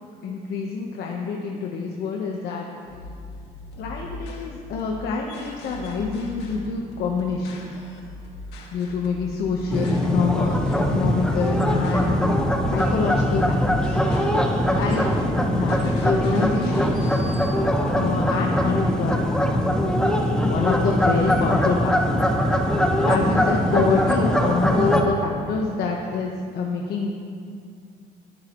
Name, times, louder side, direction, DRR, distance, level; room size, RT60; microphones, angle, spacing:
voice 1, 0.2-2.7 3.8-7.6 8.7-10.6 10.9-12.2 12.7-14.0 14.6-15.1 15.5-16.9 17.9-19.5 20.4-22.2 23.0-27.1, left 5 dB, 70° left, 0 dB, 1.2 m, -26 dB
sound 1, 2.9-17.5, left 1 dB, 90° left, 1.9 m, -39 dB
sound 2, 9.7-25.0, equal, 5° left, 1.2 m, -21 dB
21.5 x 9.6 x 3.1 m, 2.3 s
cardioid pair, 110°, 17 cm